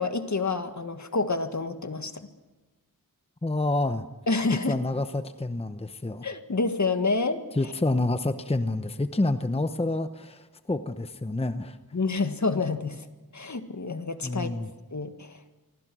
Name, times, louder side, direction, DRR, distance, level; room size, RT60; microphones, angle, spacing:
voice 1, 0.0-2.3 4.3-4.8 6.2-7.4 11.9-13.0 13.3-14.6 14.9-15.4, left 3 dB, 50° left, 8 dB, 1.8 m, -28 dB
voice 2, 3.4-4.1 4.7-6.3 7.5-11.8 14.2-14.7, left 2 dB, 15° left, 9 dB, 0.9 m, -28 dB
27.0 x 24.0 x 6.3 m, 1.1 s
wide cardioid pair, 85°, 36 cm